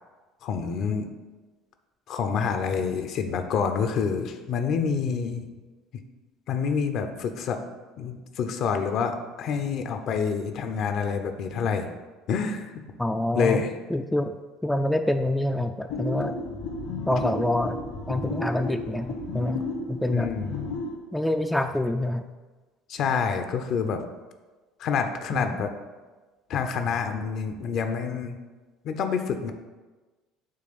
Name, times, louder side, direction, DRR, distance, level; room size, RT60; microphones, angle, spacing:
voice 1, 0.4-1.1 2.1-5.5 6.5-7.6 8.0-11.9 12.3-12.8 13.3-13.7 20.1-20.5 22.9-24.0 24.8-25.7 26.5-28.4 28.8-29.5, left 6 dB, 50° left, 7 dB, 0.6 m, -27 dB
voice 2, 13.0-13.6 13.9-14.4 14.6-16.4 17.1-17.8 18.1-20.3 21.1-22.2 25.3-25.5, left 1 dB, 5° left, 6 dB, 0.4 m, -26 dB
sound 1, 15.9-20.9, left 2 dB, 70° left, 1.3 m, -33 dB
7.6 x 3.0 x 6.0 m, 1.3 s
figure-of-eight pair, 60°, 0 cm